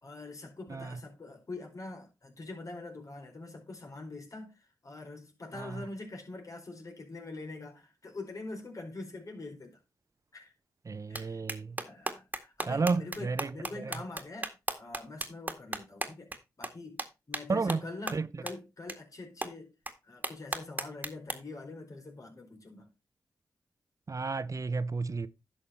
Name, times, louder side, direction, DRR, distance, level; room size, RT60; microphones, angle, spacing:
voice 1, 0.0-9.8 10.3-10.5 11.1-11.4 11.8-16.3 16.6-19.7 20.0-22.9, left 2 dB, 55° left, 4.6 m, -44 dB
voice 2, 10.9-11.8 12.7-13.5 13.8-13.9 17.5-18.3 24.1-25.3, right 4 dB, 50° right, 0.8 m, -32 dB
sound 1, 11.1-11.2 11.5-16.4 16.6-16.7 17.0-17.1 17.3-17.4 17.7-17.8 18.1-18.2 18.5-18.6 18.9-19.0 19.4-19.5 19.9-20.0 20.2-21.3, right 2 dB, 25° right, 2.0 m, -35 dB
11.0 x 6.6 x 4.3 m
cardioid pair, 45°, 7 cm